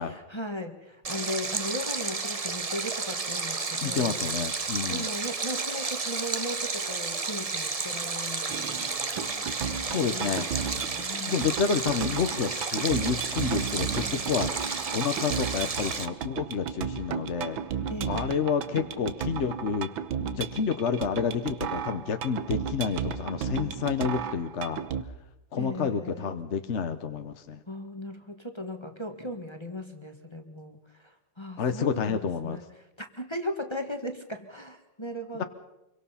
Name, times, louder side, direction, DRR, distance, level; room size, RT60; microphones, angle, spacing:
voice 1, 0.0-4.2 4.9-8.8 9.6-10.5 10.8-11.4 17.9-18.4 25.6-26.4 27.7-32.6 33.0-35.4, left 1 dB, 15° left, 5 dB, 1.2 m, -37 dB
Stream, 1.0-16.1, right 4 dB, 35° right, 0.6 m, -32 dB
voice 2, 3.8-5.1 9.9-10.4 11.2-14.5 14.9-17.6 18.0-19.9 20.3-24.8 25.5-27.6 31.6-32.6 35.4-35.5, left 6 dB, 50° left, 8 dB, 0.9 m, -29 dB
sound 1, 8.5-25.0, right 7 dB, 80° right, 1.8 m, -34 dB
26.0 x 23.5 x 5.7 m, 0.92 s
omnidirectional pair, 2.2 m